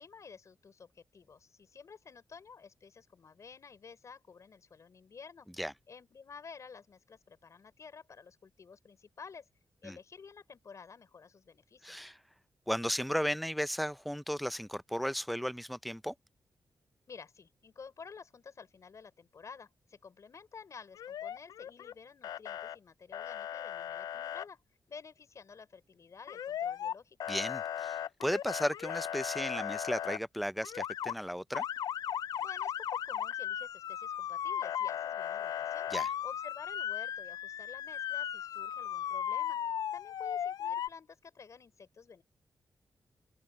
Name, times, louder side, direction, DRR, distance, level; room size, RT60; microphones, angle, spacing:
voice 1, 0.0-5.5 5.9-9.5 9.8-12.1 17.1-24.6 24.9-27.4 32.4-35.9 36.2-39.6 39.9-42.2, left 5 dB, 55° left, 5.3 m, -51 dB
voice 2, 11.8-12.2 12.7-16.1 27.3-31.6 35.9-36.1, equal, ahead, 0.5 m, -35 dB
Motor vehicle (road) / Siren, 21.0-21.9 22.2-22.8 23.1-24.5 26.3-26.9 27.2-30.2 30.6-31.1 31.5-40.9, left 10 dB, 85° left, 0.3 m, -36 dB
open air
wide cardioid pair, 105°, 6 cm